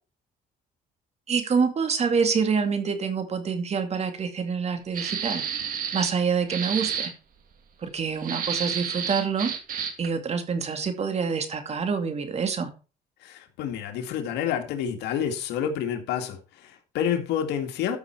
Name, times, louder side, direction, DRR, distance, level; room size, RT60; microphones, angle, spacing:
voice 1, 1.3-5.4 5.9-7.1 7.8-9.5 10.0-12.7, right 5 dB, 40° right, 2.4 m, -26 dB
sound 1, 4.9-6.2 6.5-7.1 8.2-10.1, right 7 dB, 55° right, 2.1 m, -30 dB
voice 2, 13.2-18.0, left 9 dB, 85° left, 2.1 m, -29 dB
13.5 x 6.4 x 4.6 m
cardioid pair, 110°, 17 cm